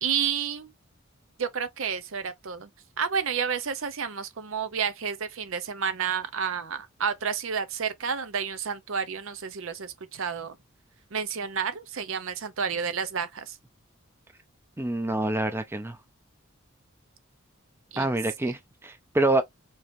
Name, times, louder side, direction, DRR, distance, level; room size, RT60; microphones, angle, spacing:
voice 1, 0.0-0.7 1.4-2.7 3.0-10.5 11.1-13.6 17.9-18.1, right 6 dB, 70° right, 0.7 m, -30 dB
voice 2, 14.8-16.0 18.0-19.4, right 2 dB, 10° right, 0.5 m, -26 dB
4.8 x 2.9 x 2.6 m
head